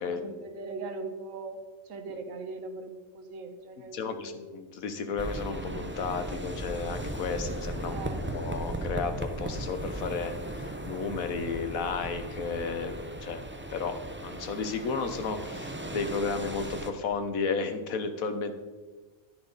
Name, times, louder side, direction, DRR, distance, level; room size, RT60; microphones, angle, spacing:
voice 1, 0.0-4.4 7.9-8.5 14.6-14.8, right 3 dB, 65° right, 6 dB, 1.4 m, -40 dB
voice 2, 3.9-13.4 13.7-14.0 14.2-18.5, left 5 dB, 75° left, 8 dB, 1.3 m, -33 dB
sound 1, 5.2-16.9, right 1 dB, 15° right, 0.4 m, -37 dB
10.5 x 10.0 x 4.0 m, 1.3 s
omnidirectional pair, 1.5 m